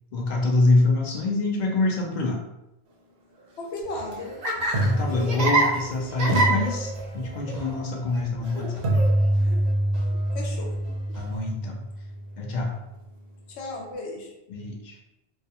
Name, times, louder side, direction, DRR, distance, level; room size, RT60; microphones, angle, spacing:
voice 1, 0.1-2.4 4.8-8.8 11.1-11.8 12.4-12.7 14.5-15.0, left 2 dB, 55° left, 0 dB, 0.5 m, -25 dB
voice 2, 3.6-4.4 10.3-10.7 13.5-14.3, left 2 dB, 85° left, 0 dB, 0.9 m, -35 dB
sound 1, 3.6-3.8 4.7-5.9 6.3-7.5 8.8-12.8, right 1 dB, 85° right, 0.8 m, -26 dB
Laughter, 3.8-11.4, right 2 dB, 50° right, 0.5 m, -29 dB
2.3 x 2.2 x 2.7 m, 0.92 s
omnidirectional pair, 1.1 m